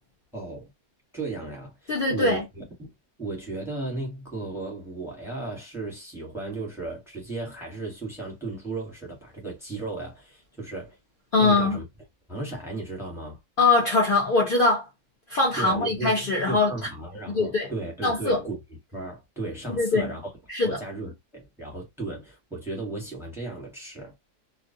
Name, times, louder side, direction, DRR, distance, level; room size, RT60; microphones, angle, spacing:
voice 1, 0.3-0.7 1.1-2.9 3.2-11.0 11.4-11.8 12.3-13.4 15.5-16.1 16.5-18.6 18.9-20.3 20.6-24.1, right 2 dB, ahead, 1.0 m, -35 dB
voice 2, 1.9-2.4 11.3-11.8 13.6-14.9 15.3-16.7 17.3-17.7 18.0-18.4 19.8-20.1 20.5-20.8, left 3 dB, 50° left, 0.7 m, -22 dB
2.3 x 2.1 x 2.6 m
omnidirectional pair, 1.4 m